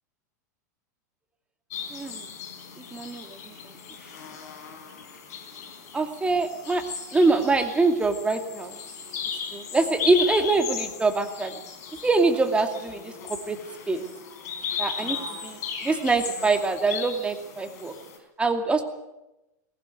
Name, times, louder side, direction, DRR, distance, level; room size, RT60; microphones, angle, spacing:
sound 1, 1.7-18.2, left 7 dB, 60° left, 4.4 m, -36 dB
voice 1, 1.9-2.3 2.8-3.5 5.9-6.8 7.1-8.8 9.5-11.6 12.0-13.6 13.9-14.0 14.8-17.9 18.4-18.8, right 3 dB, 10° right, 5 dB, 2.5 m, -24 dB
20.0 x 18.0 x 7.9 m, 0.97 s
figure-of-eight pair, 95°, 10 cm